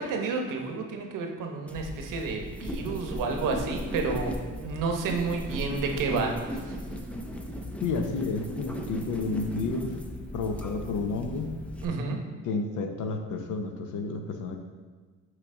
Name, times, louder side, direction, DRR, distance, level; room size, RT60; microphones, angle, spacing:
voice 1, 0.0-6.8 11.8-12.2, right 4 dB, 75° right, 3 dB, 0.9 m, -30 dB
sound 1, 1.7-11.8, equal, 5° left, 0.4 m, -37 dB
voice 2, 7.8-10.0 10.3-11.5 12.4-14.6, left 3 dB, 70° left, 5 dB, 0.8 m, -31 dB
6.5 x 4.7 x 3.7 m, 1.5 s
cardioid pair, 130°, 32 cm